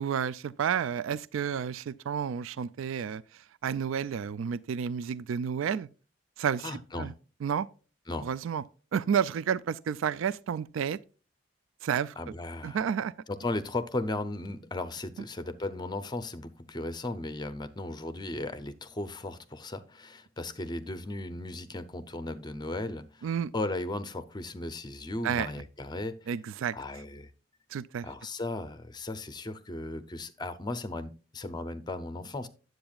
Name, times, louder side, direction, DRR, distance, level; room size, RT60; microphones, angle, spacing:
voice 1, 0.0-5.9 6.4-7.1 7.4-7.7 8.2-8.6 8.9-11.0 11.8-12.1 12.6-13.1 23.2-23.5 25.2-25.5 26.3-26.8 27.7-28.1, right 7 dB, 70° right, 0.3 m, -31 dB
voice 2, 6.6-7.1 8.1-8.3 12.2-12.8 13.3-26.3 26.7-27.3 28.0-32.5, left 2 dB, 20° left, 0.5 m, -36 dB
10.5 x 7.8 x 2.3 m
head